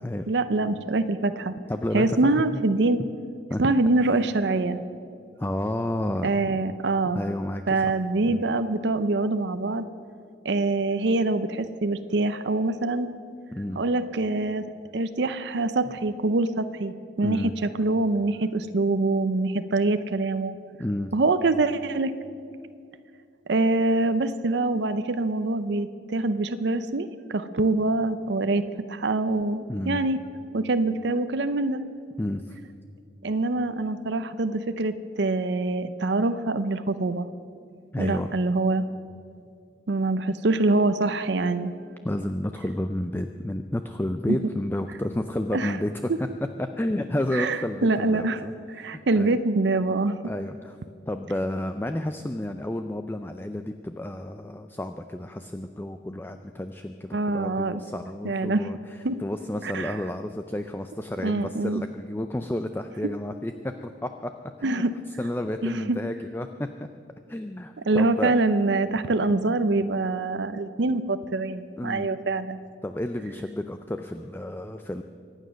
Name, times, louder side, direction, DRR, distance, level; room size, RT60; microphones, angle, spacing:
voice 1, 0.3-1.5 1.9-3.0 3.6-4.8 6.2-7.2 7.7-9.9 10.4-13.1 13.8-14.6 14.9-20.5 21.1-22.1 23.5-28.6 28.9-30.2 30.5-31.8 33.2-37.3 38.0-38.9 39.9-41.7 44.3-44.4 45.5-45.8 47.3-48.4 48.7-50.2 57.1-57.8 58.2-58.7 59.0-59.2 59.6-60.0 61.2-61.8 64.6-64.9 65.6-66.0 67.9-72.6, right 2 dB, 65° right, 10 dB, 0.6 m, -25 dB
voice 2, 1.7-2.6 3.5-3.7 5.4-6.6 7.1-7.9 8.3-8.4 13.5-13.8 17.2-17.5 20.8-21.1 29.7-30.0 32.2-32.6 37.9-38.3 42.0-46.1 46.6-49.4 50.2-50.8 51.1-64.3 64.6-64.8 65.2-66.7 67.3-68.3 71.8-72.1 72.8-75.0, left 1 dB, 10° left, 7 dB, 0.4 m, -31 dB
24.0 x 9.1 x 6.3 m, 2.4 s
head